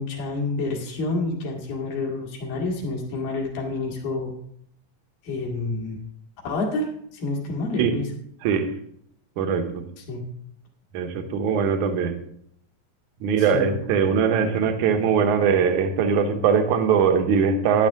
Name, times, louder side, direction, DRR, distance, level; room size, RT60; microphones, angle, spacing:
voice 1, 0.0-4.3 5.2-6.0 6.4-8.1 10.1-10.2 13.4-13.7, left 3 dB, 75° left, -1 dB, 3.7 m, -28 dB
voice 2, 8.4-8.7 9.4-9.9 10.9-12.1 13.2-17.9, right 6 dB, 65° right, 7 dB, 2.2 m, -21 dB
12.5 x 9.8 x 3.6 m, 0.69 s
omnidirectional pair, 4.1 m